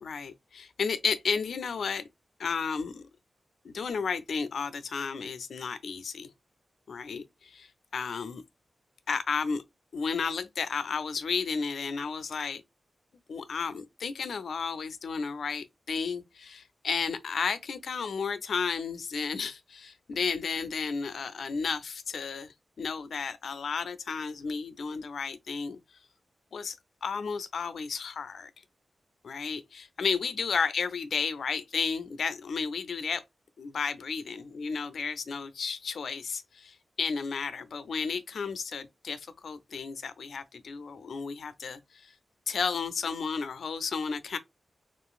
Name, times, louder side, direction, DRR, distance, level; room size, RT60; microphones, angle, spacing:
voice 1, 0.0-2.0 2.4-3.0 3.6-6.3 6.9-8.4 9.1-9.6 9.9-12.6 13.3-25.8 26.5-28.5 29.2-33.2 33.6-42.1 42.5-44.4, left 5 dB, 80° left, 0.4 m, -33 dB
3.7 x 2.5 x 2.3 m
wide cardioid pair, 115°, 0 cm